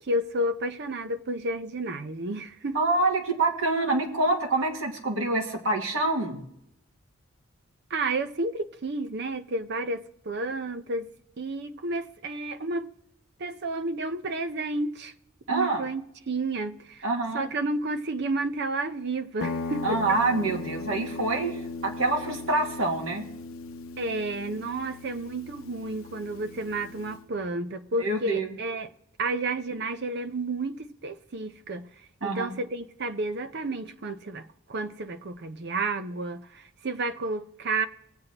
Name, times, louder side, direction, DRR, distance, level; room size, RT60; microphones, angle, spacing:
voice 1, 0.0-2.8 7.9-11.1 11.4-12.9 13.4-15.1 15.5-17.0 17.3-20.0 24.0-28.9 29.2-31.9 32.2-37.9, right 2 dB, 55° right, 0.7 m, -31 dB
voice 2, 2.7-6.4 15.5-15.8 17.0-17.4 19.8-21.6 21.8-23.3 28.0-28.5 32.2-32.5, right 2 dB, 80° right, 2.0 m, -26 dB
Guitar, 19.4-27.2, left 3 dB, 85° left, 0.7 m, -38 dB
20.0 x 8.1 x 3.0 m
head